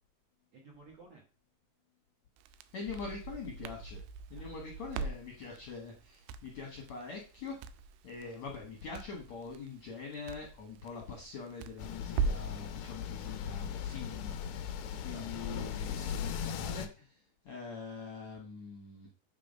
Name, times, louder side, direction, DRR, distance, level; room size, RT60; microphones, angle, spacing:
voice 1, 0.5-1.2 4.3-4.6 14.7-15.7, right 3 dB, 55° right, -2 dB, 2.1 m, -56 dB
Crackle, 2.4-12.6, right 4 dB, 85° right, 2.3 m, -41 dB
voice 2, 2.7-4.0 4.3-7.6 8.0-14.7 15.0-17.2 17.5-19.1, left 4 dB, 65° left, -1 dB, 1.8 m, -44 dB
sound 1, 11.8-16.9, left 8 dB, 80° left, 2.2 m, -38 dB
8.7 x 3.8 x 5.2 m, 0.34 s
omnidirectional pair, 5.1 m